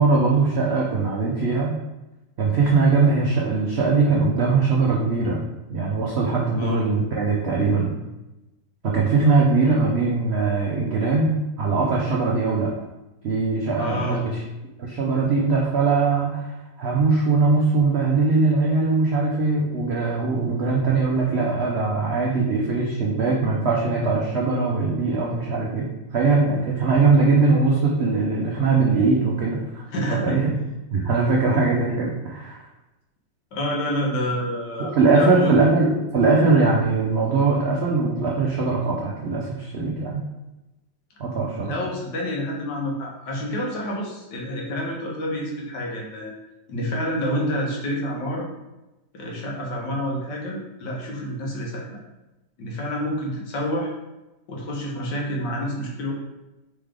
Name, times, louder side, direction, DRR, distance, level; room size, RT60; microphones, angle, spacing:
voice 1, 0.0-1.8 2.4-5.4 5.7-8.0 8.8-12.7 13.2-14.4 14.8-29.8 30.1-30.5 30.9-32.7 34.8-40.2 41.2-41.7, right 3 dB, 85° right, -2 dB, 0.5 m, -21 dB
voice 2, 13.8-14.2 29.9-30.4 31.0-31.1 33.5-35.6 41.7-46.3 46.7-48.5 49.1-52.0 52.6-53.9 54.5-56.1, equal, 75° left, -2 dB, 1.6 m, -28 dB
4.0 x 3.6 x 3.3 m, 0.99 s
omnidirectional pair, 1.9 m